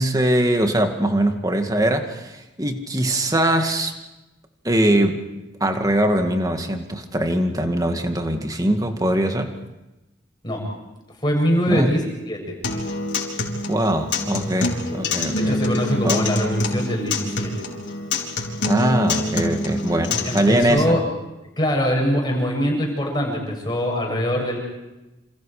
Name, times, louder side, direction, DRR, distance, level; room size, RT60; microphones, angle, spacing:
voice 1, 0.0-3.9 4.6-5.2 5.6-9.5 11.7-12.0 13.7-16.3 18.6-21.0, right 1 dB, 20° right, 5 dB, 2.1 m, -22 dB
voice 2, 11.2-12.5 14.9-15.0 15.4-17.7 20.2-21.0 21.6-24.6, equal, 25° left, 0 dB, 7.4 m, -23 dB
Acoustic guitar, 12.6-20.6, left 2 dB, 75° left, 4.0 m, -26 dB
28.0 x 28.0 x 5.0 m, 1.0 s
head